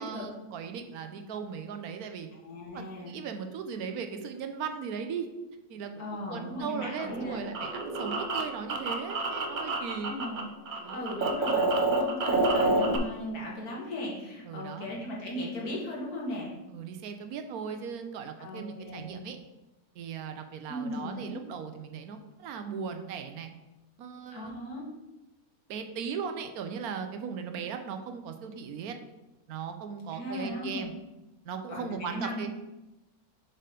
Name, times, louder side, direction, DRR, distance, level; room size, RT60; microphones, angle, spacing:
voice 1, 0.0-2.3 2.7-5.3 5.7-10.2 10.8-11.1 14.5-14.9 16.7-19.4 20.0-23.5 24.0-24.5 25.7-29.0 29.5-30.9 31.4-32.5, right 6 dB, 70° right, 7 dB, 1.1 m, -38 dB
voice 2, 2.4-3.2 6.0-7.4 9.9-10.4 10.9-16.5 18.4-19.2 20.7-21.4 24.3-24.9 30.1-30.9 31.7-32.5, left 1 dB, 70° left, -3 dB, 2.1 m, -37 dB
sound 1, 7.0-10.4 10.7-13.0, right 2 dB, 50° right, 0.6 m, -28 dB
6.6 x 3.8 x 5.1 m, 1.0 s
omnidirectional pair, 1.7 m